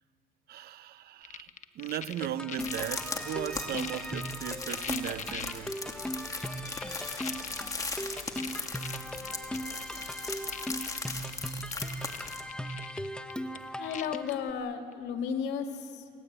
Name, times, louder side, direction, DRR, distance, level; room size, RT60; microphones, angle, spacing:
voice 1, 0.5-1.5 1.7-5.8, right 12 dB, 65° right, 0.8 m, -37 dB
sound 1, 1.2-3.0 3.5-5.8 6.4-9.8 10.2-10.3 10.5-11.3 11.6-14.3 14.9-15.0, left 8 dB, 45° left, 1.0 m, -42 dB
sound 2, 2.2-14.5, equal, 5° left, 1.3 m, -39 dB
sound 3, 2.6-12.4, left 3 dB, 20° left, 2.7 m, -38 dB
voice 2, 7.3-7.7 9.0-9.7 13.8-16.1, left 7 dB, 85° left, 2.4 m, -36 dB
28.5 x 18.5 x 9.0 m
cardioid pair, 110°, 17 cm